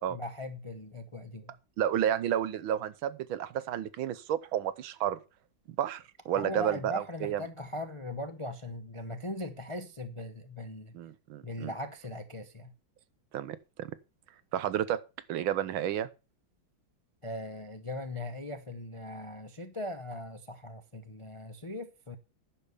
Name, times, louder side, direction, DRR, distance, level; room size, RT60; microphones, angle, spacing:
voice 1, 0.1-1.5 6.3-10.9 11.4-12.7 17.2-22.2, left 1 dB, 50° left, 0.3 m, -39 dB
voice 2, 1.8-5.2 5.8-7.4 10.9-11.7 13.3-14.0 14.5-15.0 15.3-16.1, right 10 dB, 85° right, 1.7 m, -31 dB
10.0 x 6.8 x 6.9 m
omnidirectional pair, 2.2 m